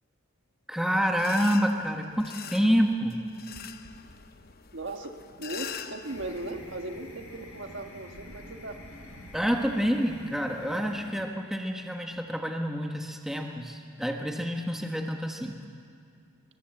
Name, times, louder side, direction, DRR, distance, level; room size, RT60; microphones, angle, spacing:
voice 1, 0.7-3.2 9.3-15.6, equal, ahead, 2 dB, 1.3 m, -28 dB
sound 1, 1.2-6.5, left 8 dB, 45° left, 0.9 m, -43 dB
voice 2, 4.7-8.8, right 2 dB, 60° right, 4 dB, 1.7 m, -38 dB
sound 2, 6.1-11.1, left 1 dB, 85° left, 5.0 m, -46 dB
22.5 x 20.5 x 7.9 m, 2.4 s
head